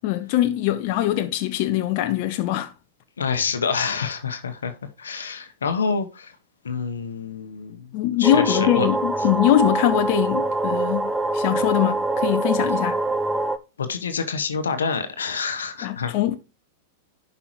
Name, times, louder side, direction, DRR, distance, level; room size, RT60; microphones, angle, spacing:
voice 1, 0.0-2.7 7.9-13.0 15.8-16.4, left 13 dB, 50° left, 0.7 m, -22 dB
voice 2, 3.2-6.3 6.6-8.9 13.8-16.1, left 5 dB, 85° left, 1.0 m, -27 dB
sound 1, 8.2-13.6, right 2 dB, 10° right, 0.6 m, -24 dB
11.0 x 5.5 x 3.1 m
hypercardioid pair, 100°, 0 cm